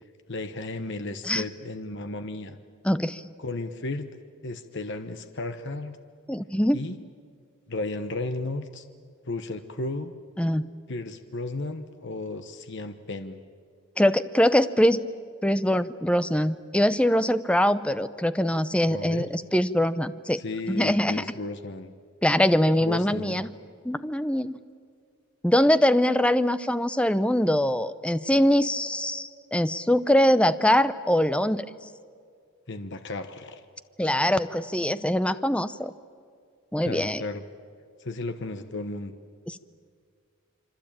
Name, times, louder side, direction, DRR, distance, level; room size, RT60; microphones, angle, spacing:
voice 1, 0.3-2.6 3.4-4.1 4.4-6.0 6.7-7.0 7.7-8.8 9.3-10.1 10.9-13.4 18.9-19.3 20.4-21.9 22.8-23.5 32.7-33.6 36.8-37.4 38.0-39.1, left 2 dB, 55° left, 9 dB, 1.1 m, -34 dB
voice 2, 2.8-3.2 6.3-6.8 10.4-10.6 14.0-15.0 15.4-20.4 20.7-21.2 22.2-23.5 23.8-24.5 25.4-31.7 34.0-35.9 36.7-37.2 39.5-39.6, equal, 5° left, 13 dB, 0.7 m, -23 dB
26.0 x 25.0 x 8.9 m, 2.1 s
head